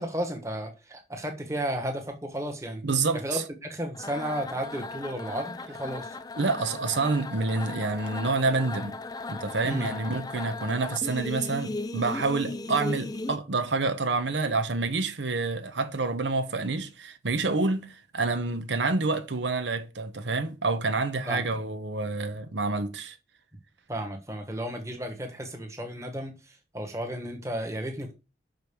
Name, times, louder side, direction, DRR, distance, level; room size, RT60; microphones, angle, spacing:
voice 1, 0.0-2.8 3.1-6.2 9.6-9.9 21.3-21.5 23.9-28.1, equal, 15° right, 1.5 m, -33 dB
voice 2, 2.8-3.4 6.4-9.0 9.3-23.2, right 3 dB, 85° right, 1.1 m, -28 dB
sound 1, 3.9-13.4, left 2 dB, 20° left, 0.5 m, -36 dB
6.2 x 5.3 x 6.8 m
head